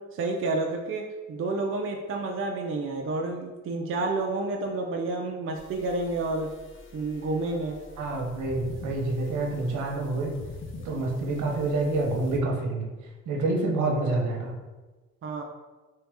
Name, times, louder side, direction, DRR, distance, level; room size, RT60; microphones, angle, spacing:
voice 1, 0.0-6.5 6.9-7.8 15.2-15.4, right 2 dB, 45° right, 2 dB, 0.5 m, -30 dB
sound 1, 5.6-12.4, left 3 dB, 40° left, 0.6 m, -45 dB
voice 2, 8.0-10.4 10.8-12.9 13.3-14.5, right 2 dB, 75° right, 0 dB, 0.9 m, -27 dB
3.3 x 2.8 x 3.5 m, 1.2 s
cardioid pair, 90°, 30 cm